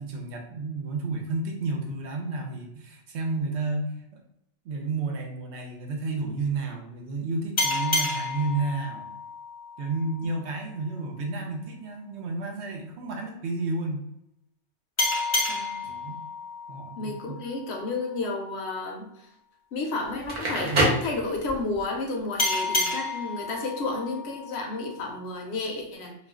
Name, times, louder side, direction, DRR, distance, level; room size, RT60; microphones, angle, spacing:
voice 1, 0.0-3.9 4.6-9.1 9.8-14.0 15.8-16.2 16.7-17.4 20.6-20.9, right 3 dB, 70° right, 2 dB, 0.9 m, -31 dB
sound 1, 7.6-10.8 15.0-18.2 22.4-25.3, left 2 dB, 35° left, 0.5 m, -31 dB
voice 2, 15.5-15.9 17.0-19.3 19.7-26.2, left 3 dB, 70° left, 2 dB, 0.8 m, -32 dB
Crackle, 20.1-21.8, right 1 dB, 45° right, 0.8 m, -26 dB
2.4 x 2.2 x 3.5 m, 0.79 s
omnidirectional pair, 1.2 m